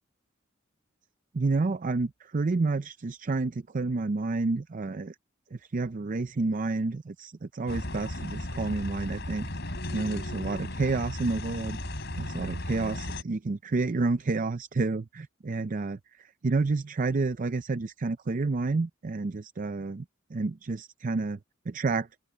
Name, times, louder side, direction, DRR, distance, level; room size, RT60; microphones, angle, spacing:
voice 1, 1.3-5.1 5.5-9.5 9.9-11.8 12.2-20.0 20.3-21.4 21.7-22.1, right 3 dB, 40° right, 0.5 m, -29 dB
sound 1, 7.7-13.2, left 1 dB, 55° left, 4.8 m, -35 dB
open air
head